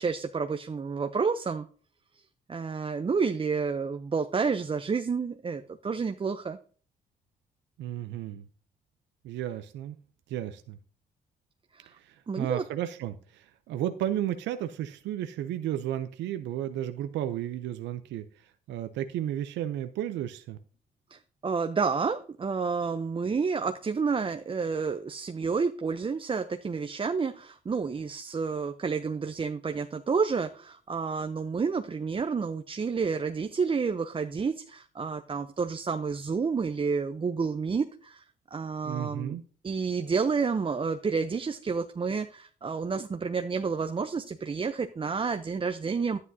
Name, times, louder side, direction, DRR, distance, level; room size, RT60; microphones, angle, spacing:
voice 1, 0.0-1.6 2.1-2.2 2.5-6.6 11.7-11.9 12.3-12.6 21.1-38.2 38.5-39.4 39.6-46.2, right 5 dB, 30° right, 7 dB, 0.6 m, -30 dB
voice 2, 7.8-8.4 9.2-10.0 10.3-10.8 11.9-18.2 18.7-20.6 38.8-39.4, right 11 dB, 80° right, 9 dB, 0.6 m, -33 dB
11.0 x 9.5 x 2.7 m, 0.42 s
supercardioid pair, 65°, 18 cm